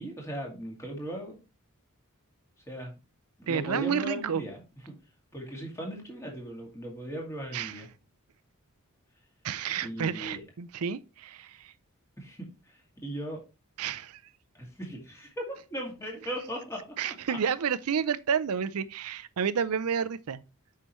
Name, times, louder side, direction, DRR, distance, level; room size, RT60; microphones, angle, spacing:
voice 1, 0.0-1.4 2.7-3.0 3.4-4.6 5.3-7.9 9.8-10.4 12.2-13.4 14.5-17.4, equal, 15° left, 2.2 m, -38 dB
voice 2, 3.5-4.4 7.5-7.8 9.4-11.7 13.8-14.2 17.0-20.4, right 7 dB, 80° right, 0.5 m, -30 dB
8.0 x 5.7 x 3.1 m
head